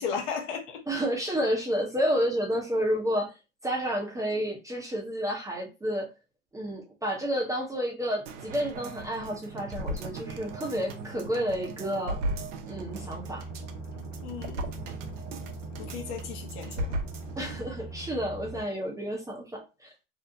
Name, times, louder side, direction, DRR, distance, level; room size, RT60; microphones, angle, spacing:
voice 1, 0.0-0.8 14.2-14.6 15.8-17.0, left 6 dB, 50° left, 0.8 m, -35 dB
voice 2, 0.9-3.3 3.6-6.1 6.5-12.2 12.7-13.5 17.4-20.0, equal, 10° right, 0.6 m, -30 dB
sound 1, 8.3-17.7 18.0-18.1, right 1 dB, 75° right, 0.6 m, -37 dB
sound 2, 12.7-18.6, right 2 dB, 25° left, 1.0 m, -41 dB
2.7 x 2.0 x 2.5 m
hypercardioid pair, 100°, 36 cm